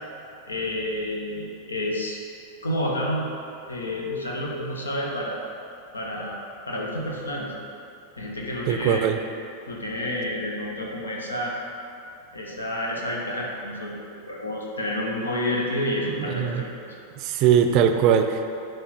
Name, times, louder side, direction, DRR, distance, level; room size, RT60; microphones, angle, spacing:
voice 1, 0.5-2.2 2.6-3.3 3.7-5.4 5.9-7.5 8.2-9.0 9.7-11.5 12.3-13.9 14.3-16.7, left 1 dB, 75° left, -2 dB, 0.9 m, -29 dB
voice 2, 8.7-9.2 16.4-16.6 17.2-18.5, right 8 dB, 40° right, 6 dB, 0.5 m, -20 dB
9.7 x 3.4 x 4.1 m, 2.7 s
figure-of-eight pair, 90°, 0 cm